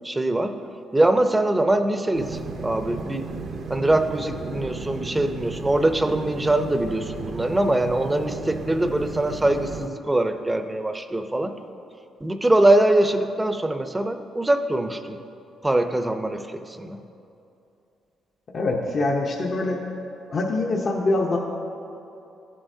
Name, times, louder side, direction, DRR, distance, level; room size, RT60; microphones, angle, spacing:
voice 1, 0.0-0.5 0.9-3.3 3.7-11.5 12.2-15.2 15.6-17.0, right 1 dB, 15° right, 8 dB, 0.5 m, -22 dB
sound 1, 2.1-9.9, right 4 dB, 60° right, 0.6 m, -34 dB
voice 2, 18.5-19.8 20.3-21.4, left 2 dB, 45° left, 0 dB, 0.7 m, -24 dB
14.0 x 7.6 x 2.7 m, 2.8 s
cardioid pair, 90°, 0 cm